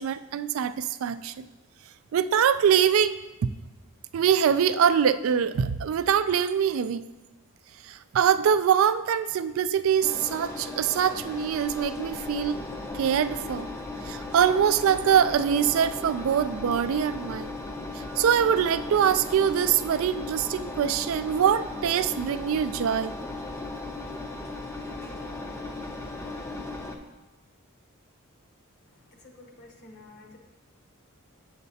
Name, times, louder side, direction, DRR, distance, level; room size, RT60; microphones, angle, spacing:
voice 1, 0.0-1.5 2.1-3.5 4.1-7.1 7.9-12.6 12.9-13.7 14.1-17.5 18.1-23.1, right 8 dB, 65° right, 13 dB, 0.3 m, -24 dB
Engine, 10.0-27.0, left 2 dB, 10° left, 0.5 m, -37 dB
voice 2, 29.1-30.4, left 2 dB, 55° left, 2 dB, 0.9 m, -50 dB
8.0 x 6.6 x 2.7 m, 1.1 s
head